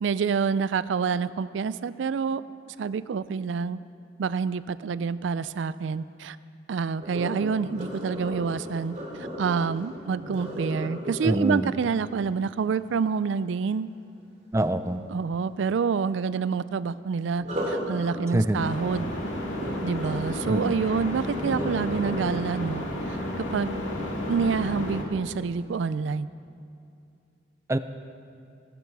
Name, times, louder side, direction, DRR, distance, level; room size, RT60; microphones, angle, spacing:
voice 1, 0.0-3.8 4.2-6.4 6.7-13.9 15.1-19.1 19.8-22.8 23.1-23.8 24.3-26.3, right 5 dB, 80° right, 16 dB, 0.4 m, -27 dB
Sink (filling or washing), 7.0-13.0 17.3-24.4 24.9-25.2 25.7-25.8, equal, 40° right, 2.8 m, -37 dB
voice 2, 11.2-11.8 14.5-15.0 18.3-18.7 20.5-20.8 27.7-27.8, right 1 dB, 15° right, 11 dB, 0.4 m, -25 dB
sound 1, 18.5-25.0, left 1 dB, 85° left, 2.2 m, -32 dB
18.0 x 12.0 x 4.7 m, 2.5 s
head